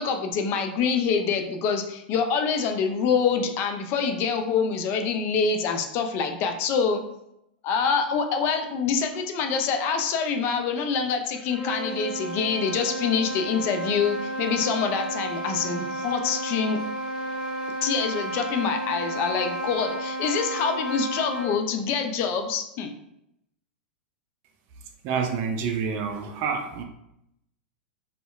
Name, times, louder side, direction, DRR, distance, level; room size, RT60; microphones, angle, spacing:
voice 1, 0.0-7.0 7.6-16.8 17.8-22.9, left 6 dB, 40° left, 5 dB, 0.3 m, -26 dB
sound 1, 11.3-21.6, right 1 dB, 5° left, 1.1 m, -32 dB
voice 2, 25.0-26.8, right 6 dB, 45° right, 4 dB, 0.4 m, -28 dB
2.7 x 2.1 x 2.3 m, 0.80 s
hypercardioid pair, 110°, 6 cm